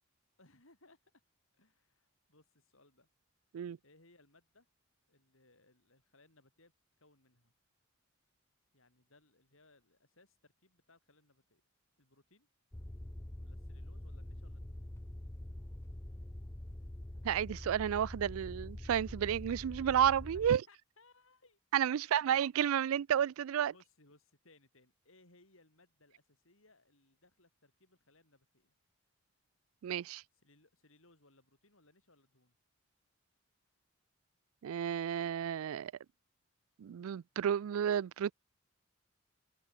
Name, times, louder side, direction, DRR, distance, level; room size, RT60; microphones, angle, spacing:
voice 1, 0.4-1.0 1.6-3.1 3.8-4.7 5.1-6.7 7.0-7.5 8.7-11.6 12.0-12.5 13.4-14.9 20.3-21.6 21.9-22.4 23.7-28.8 30.3-32.6, left 2 dB, 75° left, 6.7 m, -66 dB
sound 1, 12.7-20.5, left 1 dB, 10° left, 0.5 m, -45 dB
voice 2, 17.2-20.6 21.7-23.7 29.8-30.2 34.6-35.9 36.8-38.3, right 9 dB, 85° right, 0.3 m, -31 dB
head